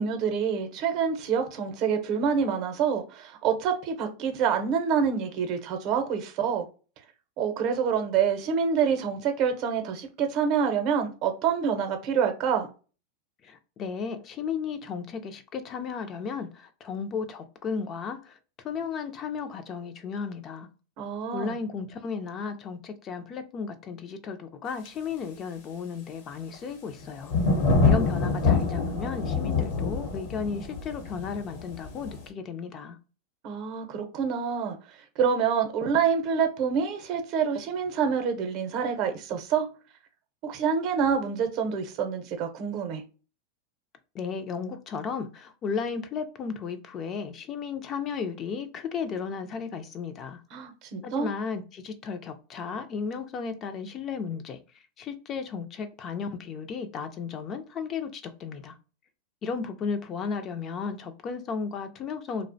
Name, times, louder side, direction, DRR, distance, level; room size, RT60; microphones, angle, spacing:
voice 1, 0.0-6.6 7.4-12.7 21.0-21.6 33.4-39.7 40.4-43.0 50.5-51.3, right 6 dB, 50° right, 0.6 m, -27 dB
voice 2, 13.4-18.4 18.6-20.7 21.3-27.3 27.8-33.0 44.1-50.4 51.0-54.6 55.0-58.7 59.4-62.5, left 5 dB, 35° left, 0.4 m, -34 dB
sound 1, 24.8-24.9 26.5-26.6 26.9-27.0 27.3-32.2, left 3 dB, 70° left, 0.8 m, -25 dB
2.4 x 2.0 x 2.6 m
hypercardioid pair, 115°, 0 cm